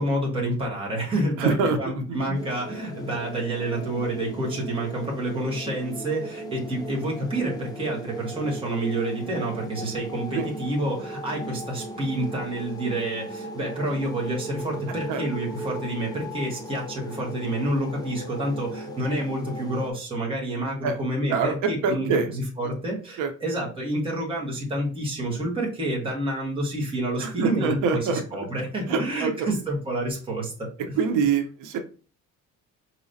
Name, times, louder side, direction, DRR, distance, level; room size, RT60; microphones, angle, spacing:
voice 1, 0.0-22.1 22.3-30.9, right 1 dB, 20° right, -2 dB, 1.3 m, -28 dB
voice 2, 1.4-2.2 10.3-10.5 15.1-15.2 20.8-21.0 21.3-22.4 23.2-23.3 27.2-28.4 28.9-29.5 31.0-31.8, right 5 dB, 90° right, 5 dB, 0.7 m, -25 dB
sound 1, 2.3-19.9, right 1 dB, 15° left, 0.3 m, -38 dB
4.8 x 3.0 x 2.6 m, 0.37 s
cardioid pair, 180°, 30 cm